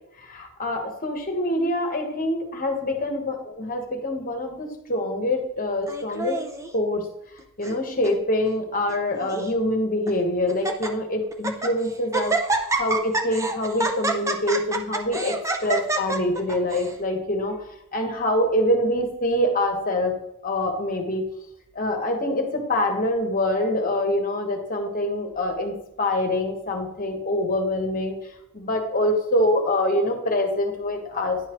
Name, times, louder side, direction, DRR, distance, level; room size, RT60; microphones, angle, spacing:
voice 1, 0.3-6.4 6.7-7.0 7.6-17.6 17.9-20.1 20.4-21.3 21.7-28.1 28.5-31.4, left 1 dB, 40° left, 3 dB, 1.3 m, -25 dB
Laughter, 5.9-6.7 7.4-7.8 8.0-8.1 8.9-9.5 10.1-10.2 10.5-10.9 11.3-11.7 12.1-16.9, right 3 dB, 15° right, 0.5 m, -27 dB
10.5 x 5.6 x 3.1 m, 0.80 s
head